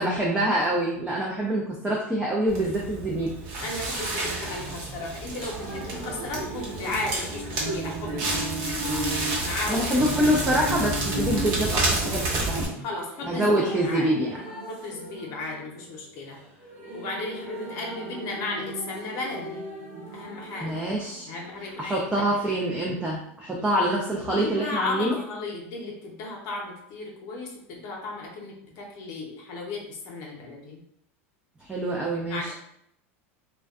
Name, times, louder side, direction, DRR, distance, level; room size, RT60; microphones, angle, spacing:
voice 1, 0.0-3.3 9.7-12.8 13.3-14.4 20.6-21.3 21.8-25.2 31.6-32.5, right 1 dB, 10° right, -3 dB, 0.4 m, -25 dB
Crackle, 2.5-12.7, right 2 dB, 60° right, 0.8 m, -29 dB
voice 2, 3.6-8.4 9.4-9.9 12.8-14.1 14.7-16.4 16.9-19.7 20.1-20.8 21.3-22.6 23.5-23.6 24.3-30.8 32.3-32.5, left 2 dB, 55° left, -1 dB, 0.7 m, -35 dB
sound 1, 4.2-22.0 23.3-23.4, right 2 dB, 30° right, 0.9 m, -41 dB
2.4 x 2.2 x 2.3 m, 0.72 s
hypercardioid pair, 105°, 8 cm